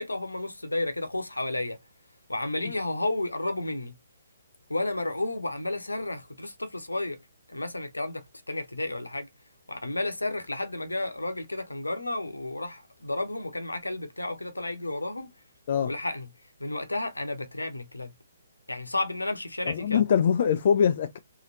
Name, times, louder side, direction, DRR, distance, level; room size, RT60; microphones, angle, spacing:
voice 1, 0.0-1.8 2.3-3.9 4.7-7.2 7.5-9.3 9.7-15.3 15.9-16.3 16.6-18.1 18.7-20.0, left 2 dB, 80° left, 0.8 m, -32 dB
voice 2, 19.7-21.2, left 7 dB, 45° left, 0.3 m, -23 dB
3.1 x 2.7 x 2.6 m
figure-of-eight pair, 130°, 0 cm